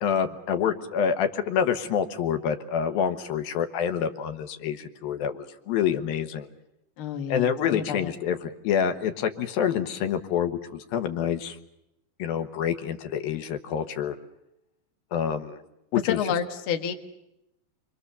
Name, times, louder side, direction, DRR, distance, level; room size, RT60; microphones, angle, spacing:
voice 1, 0.0-6.5 7.3-11.6 12.2-14.1 15.1-15.6 15.9-16.2, left 8 dB, 80° left, 8 dB, 3.0 m, -27 dB
voice 2, 7.0-8.1 15.9-16.9, left 8 dB, 50° left, 5 dB, 1.9 m, -29 dB
29.5 x 23.0 x 6.9 m, 0.85 s
omnidirectional pair, 4.3 m